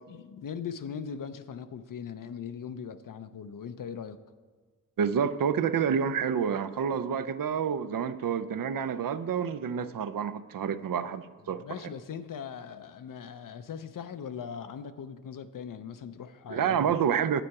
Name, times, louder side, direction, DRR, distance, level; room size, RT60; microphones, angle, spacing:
voice 1, 0.1-4.2 11.6-17.0, left 7 dB, 70° left, 0.5 m, -40 dB
voice 2, 5.0-11.6 16.5-17.4, right 7 dB, 75° right, 0.5 m, -28 dB
9.1 x 8.6 x 4.7 m
wide cardioid pair, 125°, 34 cm